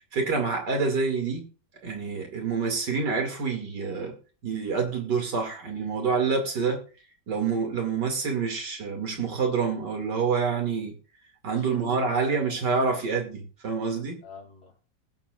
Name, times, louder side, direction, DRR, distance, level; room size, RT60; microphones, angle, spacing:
voice 1, 0.1-1.5 1.8-4.2 4.4-6.8 7.3-11.0 11.4-14.2, right 5 dB, 80° right, 3.0 m, -27 dB
voice 2, 11.6-12.6 14.2-14.9, left 4 dB, 65° left, 3.5 m, -45 dB
20.0 x 7.2 x 2.5 m
omnidirectional pair, 1.9 m